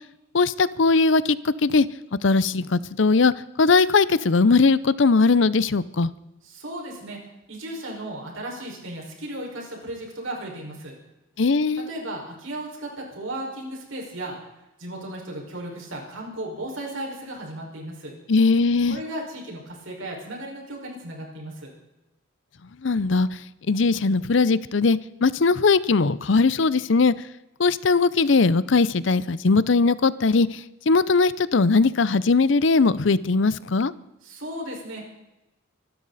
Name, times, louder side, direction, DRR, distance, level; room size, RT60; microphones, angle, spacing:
voice 1, 0.3-1.9 2.2-3.3 3.6-6.1 11.4-11.9 18.3-19.0 22.8-23.3 23.7-27.1 27.6-30.6 30.9-33.9, left 4 dB, 65° left, 18 dB, 0.6 m, -19 dB
voice 2, 6.4-7.2 7.5-11.0 11.8-14.4 14.8-18.1 18.9-21.7 34.2-35.1, right 1 dB, 75° right, -1 dB, 5.3 m, -35 dB
25.0 x 12.5 x 4.1 m, 0.98 s
head